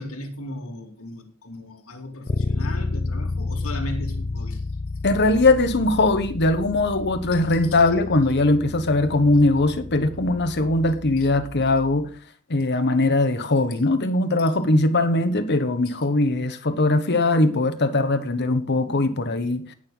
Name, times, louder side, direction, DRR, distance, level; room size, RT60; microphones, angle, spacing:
voice 1, 0.0-4.7 7.3-7.8 11.2-11.3 15.8-15.9, left 1 dB, 70° left, 2.7 m, -36 dB
Bass guitar, 2.3-12.1, left 3 dB, 30° left, 0.4 m, -31 dB
voice 2, 5.0-12.1 12.5-19.7, left 2 dB, 50° left, 1.3 m, -20 dB
18.5 x 6.7 x 3.9 m
head